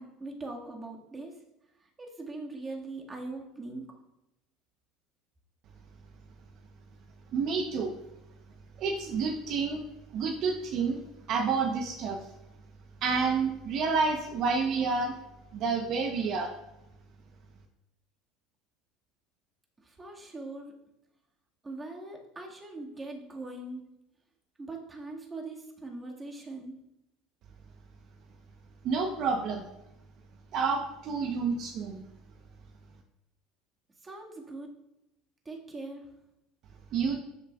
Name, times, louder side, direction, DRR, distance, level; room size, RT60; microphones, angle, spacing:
voice 1, 0.0-1.4 1.8-3.9 19.8-20.7 21.6-23.8 24.6-26.8 34.0-34.7 35.4-36.1, right 2 dB, 20° right, -1 dB, 1.8 m, -41 dB
voice 2, 7.3-8.0 8.8-9.8 10.1-11.0 11.3-12.3 13.0-15.1 15.5-16.5 28.8-29.6 30.5-32.0 36.9-37.2, right 5 dB, 55° right, 4 dB, 0.9 m, -29 dB
14.0 x 7.0 x 2.4 m, 0.90 s
supercardioid pair, 120°, 0 cm